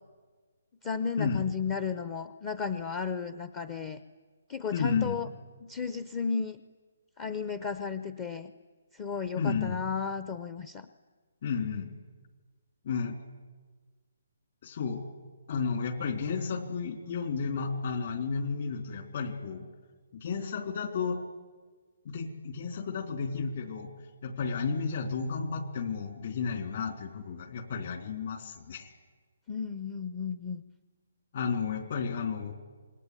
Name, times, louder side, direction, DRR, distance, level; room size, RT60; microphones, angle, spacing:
voice 1, 0.8-4.0 4.5-5.3 5.6-6.6 7.2-8.5 8.9-10.9 29.5-30.6, left 6 dB, 20° left, 12 dB, 0.9 m, -34 dB
voice 2, 4.7-5.2 9.4-9.8 11.4-11.9 12.8-13.2 14.6-15.0 15.5-19.7 20.1-21.2 22.1-23.9 24.2-28.9 31.3-32.5, left 5 dB, 50° left, 8 dB, 3.6 m, -32 dB
27.0 x 20.5 x 10.0 m, 1.4 s
hypercardioid pair, 165°, 0 cm